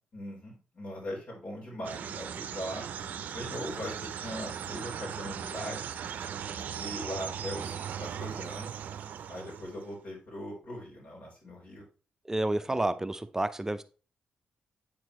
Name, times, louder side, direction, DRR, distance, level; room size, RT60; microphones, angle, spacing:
voice 1, 0.1-2.8 3.3-5.9 6.5-8.8 9.3-11.8 12.6-12.8, equal, 65° left, 4.0 m, -40 dB
sound 1, 1.8-9.9, right 8 dB, 75° right, 0.5 m, -38 dB
voice 2, 12.3-13.8, right 2 dB, 15° right, 0.6 m, -30 dB
8.4 x 4.5 x 3.1 m
cardioid pair, 60°, 3 cm